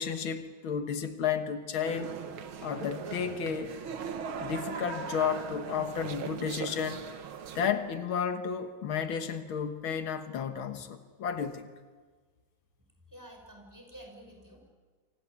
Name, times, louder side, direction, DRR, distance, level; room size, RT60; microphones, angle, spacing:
voice 1, 0.0-2.2 2.6-3.7 4.4-7.0 7.6-11.7, left 7 dB, 90° left, 8 dB, 2.3 m, -32 dB
sound 1, 1.8-7.7, right 6 dB, 85° right, 2.1 m, -39 dB
voice 2, 13.1-14.7, right 1 dB, 10° right, 2 dB, 6.2 m, -50 dB
28.0 x 25.0 x 8.4 m, 1.5 s
omnidirectional pair, 2.2 m